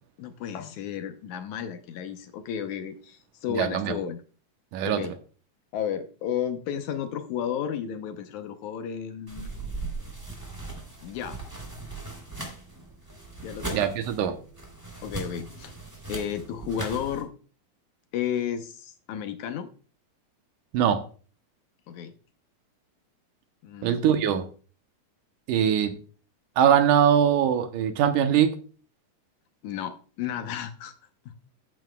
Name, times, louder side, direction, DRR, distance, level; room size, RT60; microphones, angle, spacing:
voice 1, 0.2-4.2 4.8-5.2 5.7-9.5 11.0-11.4 13.4-13.9 15.0-15.7 16.1-17.3 18.1-19.7 21.9-22.1 23.6-24.0 29.6-30.9, left 8 dB, 75° left, 2.1 m, -33 dB
voice 2, 3.5-3.9 4.7-5.0 13.7-14.3 20.7-21.0 23.8-24.4 25.5-25.9 26.6-28.5, right 9 dB, 75° right, 2.4 m, -22 dB
sound 1, 9.3-17.2, right 2 dB, 5° right, 2.6 m, -38 dB
13.5 x 9.4 x 2.3 m
omnidirectional pair, 3.7 m